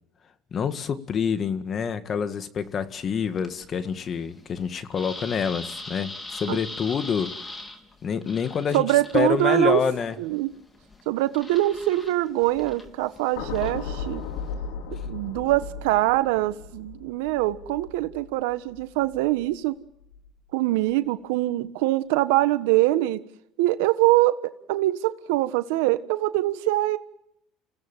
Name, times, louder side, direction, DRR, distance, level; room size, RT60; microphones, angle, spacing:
voice 1, 0.5-7.5 8.0-10.2, left 7 dB, 40° left, 10 dB, 2.0 m, -27 dB
sound 1, 2.6-14.5, left 2 dB, 20° left, 3.7 m, -43 dB
voice 2, 8.7-9.8 10.2-10.5 11.1-14.2 15.1-19.7 20.5-23.2 23.6-27.0, right 16 dB, 85° right, 12 dB, 1.4 m, -23 dB
sound 2, 13.4-19.6 20.0-20.3, left 5 dB, 85° left, 3.5 m, -36 dB
28.5 x 17.0 x 7.6 m, 0.78 s
supercardioid pair, 90°, 0 cm